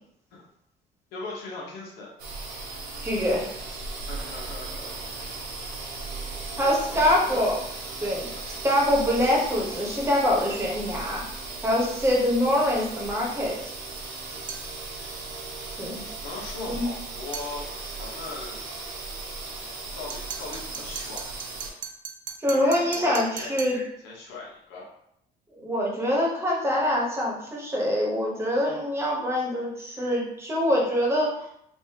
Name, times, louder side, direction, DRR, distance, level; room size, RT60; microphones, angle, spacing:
voice 1, 1.1-2.1 3.9-5.4 6.5-7.5 16.2-18.7 19.9-21.3 22.5-24.9, left 3 dB, 90° left, -3 dB, 1.1 m, -39 dB
sound 1, 2.2-21.7, right 3 dB, 75° right, 0.9 m, -37 dB
voice 2, 3.0-3.4 6.6-7.6 8.0-8.3 8.6-11.2 11.6-13.6 15.8-16.0 16.7-16.9 22.4-23.8 25.5-31.5, left 1 dB, 15° right, -3 dB, 1.1 m, -24 dB
sound 2, 14.5-14.7 17.3-17.5 20.1-23.8, right 7 dB, 55° right, 0.5 m, -38 dB
3.3 x 2.6 x 2.9 m, 0.74 s
cardioid pair, 110°, 17 cm